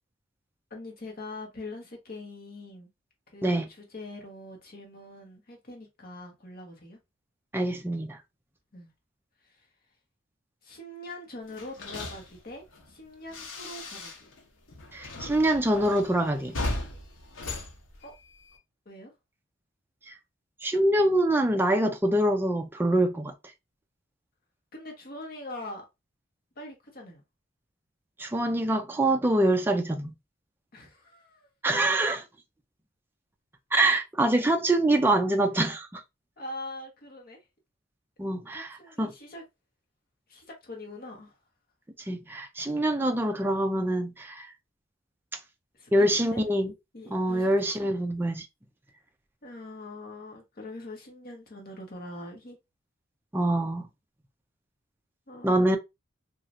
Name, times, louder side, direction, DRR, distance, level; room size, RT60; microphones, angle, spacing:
voice 1, 0.7-2.9 3.3-7.0 8.7-8.9 9.4-9.7 10.6-14.1 18.0-18.1 18.9-19.1 24.7-25.9 26.6-27.2 30.7-31.5 36.4-37.4 38.5-39.5 40.3-41.4 43.0-43.3 45.7-46.5 46.9-47.5 47.8-47.9 49.4-52.6 55.3-55.8, left 2 dB, 45° left, 0.9 m, -43 dB
voice 2, 7.5-8.2 14.9-16.6 20.1-20.2 20.6-23.3 28.2-30.1 31.6-32.2 33.7-36.0 38.2-38.7 39.0-39.1 42.1-44.5 45.9-46.7 47.1-48.5 53.3-53.9 55.4-55.8, right 1 dB, 10° right, 0.3 m, -25 dB
sound 1, 11.5-14.4 14.7-18.6, left 2 dB, 75° left, 0.7 m, -38 dB
3.0 x 2.4 x 2.5 m
head